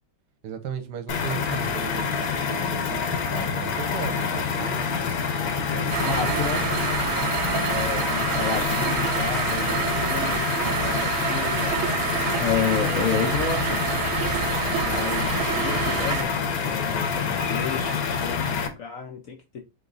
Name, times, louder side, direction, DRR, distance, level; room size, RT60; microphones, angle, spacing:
voice 1, 0.4-5.2 5.7-6.5, right 8 dB, 60° right, 1.2 m, -36 dB
sound 1, 1.1-18.7, left 6 dB, 60° left, 1.1 m, -27 dB
sound 2, 5.9-16.2, right 11 dB, 80° right, 1.3 m, -28 dB
voice 2, 6.0-7.1 7.7-11.8 12.4-14.0 14.8-16.4 16.6-19.6, left 7 dB, 75° left, 0.7 m, -31 dB
3.9 x 3.6 x 3.8 m
omnidirectional pair, 2.3 m